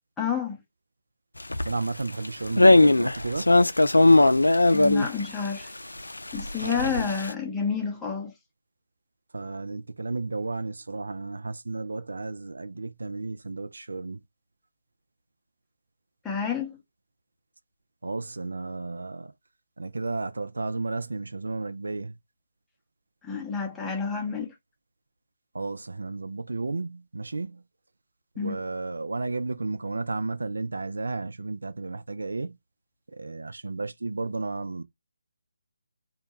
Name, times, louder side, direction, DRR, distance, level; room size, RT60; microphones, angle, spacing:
voice 1, 0.2-0.6 4.7-5.7 6.3-8.3 16.2-16.8 23.2-24.5 28.4-28.6, left 6 dB, 5° left, 0.6 m, -29 dB
sound 1, 1.5-1.7 2.1-2.3 2.6-5.4 6.1-7.3, left 2 dB, 80° left, 0.3 m, -19 dB
voice 2, 1.6-3.5 6.6-7.1 9.3-14.2 18.0-19.3 19.8-22.2 25.5-27.6 28.4-32.6 33.1-34.8, right 3 dB, 65° right, 0.3 m, -33 dB
2.2 x 2.1 x 2.9 m
figure-of-eight pair, 150°, 0 cm